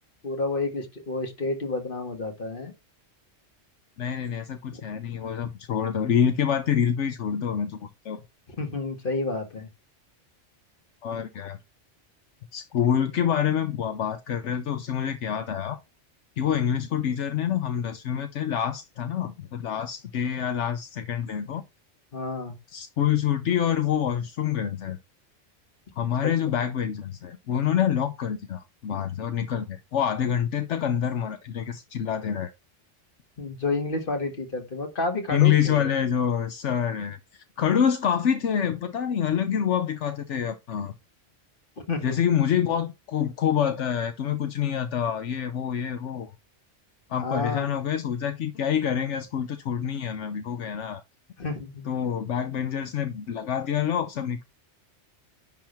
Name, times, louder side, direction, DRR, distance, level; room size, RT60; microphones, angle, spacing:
voice 1, 0.2-2.7 4.7-4.8 8.5-9.7 22.1-22.6 26.2-26.6 33.4-36.2 41.9-42.2 47.1-47.7 51.4-51.9, left 3 dB, 50° left, 1.9 m, -30 dB
voice 2, 4.0-7.8 8.0-8.2 11.0-11.6 12.5-15.8 16.4-21.6 22.7-25.0 26.0-32.5 35.3-40.9 42.0-46.3 47.1-51.0 51.9-54.4, left 9 dB, 80° left, 1.1 m, -26 dB
10.5 x 3.8 x 4.4 m
omnidirectional pair, 1.2 m